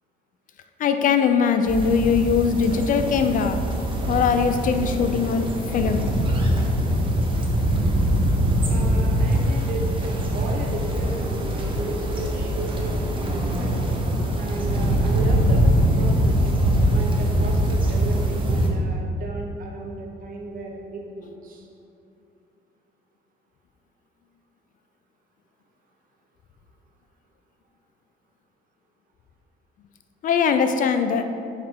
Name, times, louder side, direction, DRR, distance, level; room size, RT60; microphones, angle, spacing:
voice 1, 0.8-3.6 4.1-6.1 30.2-31.2, left 6 dB, 50° left, 8 dB, 0.4 m, -21 dB
sound 1, 1.7-18.7, equal, 30° right, 0.9 m, -23 dB
Walk footsteps, 4.0-8.5, left 3 dB, 90° left, 0.9 m, -40 dB
voice 2, 8.6-13.8 14.3-15.6 16.0-16.4 16.9-21.7, right 2 dB, 55° right, 1 dB, 1.0 m, -34 dB
7.3 x 4.8 x 3.4 m, 2.6 s
cardioid pair, 110°, 17 cm